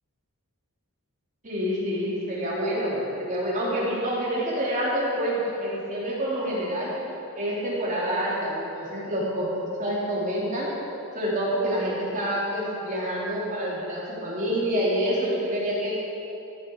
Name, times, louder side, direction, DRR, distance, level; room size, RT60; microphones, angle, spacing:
voice 1, 1.4-6.9 7.3-9.5 9.8-10.7 11.1-15.9, equal, 35° right, -7 dB, 3.6 m, -27 dB
14.0 x 11.5 x 4.8 m, 2.9 s
head